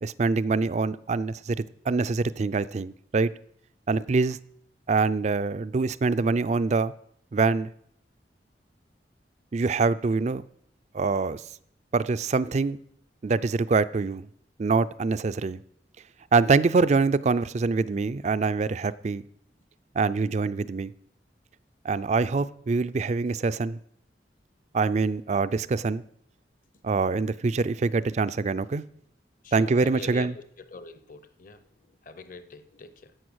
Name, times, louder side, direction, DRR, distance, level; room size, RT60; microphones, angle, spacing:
voice 1, 0.0-1.6 1.9-3.3 3.9-4.4 4.9-6.9 7.3-7.7 9.5-10.4 10.9-11.4 11.9-12.8 13.2-14.3 14.6-15.6 16.3-19.2 20.0-20.9 21.8-23.8 24.7-26.0 26.8-28.8 29.5-30.4, right 4 dB, 40° right, 0.4 m, -24 dB
voice 2, 29.4-30.4 30.7-31.6 32.1-32.9, left 3 dB, 50° left, 0.9 m, -42 dB
11.0 x 7.7 x 6.3 m
head